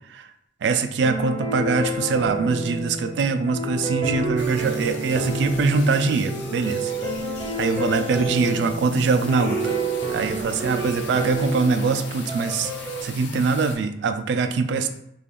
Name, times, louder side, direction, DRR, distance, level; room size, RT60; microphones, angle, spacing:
voice 1, 0.6-6.9 7.6-9.8 10.1-12.7 13.0-14.9, right 4 dB, 75° right, 9 dB, 0.3 m, -23 dB
sound 1, 1.0-13.0, right 2 dB, 30° right, 0.6 m, -29 dB
sound 2, 4.4-13.7, left 4 dB, 80° left, 0.7 m, -41 dB
sound 3, 4.8-11.3, equal, 40° left, 0.5 m, -40 dB
3.4 x 2.4 x 3.6 m, 0.76 s
head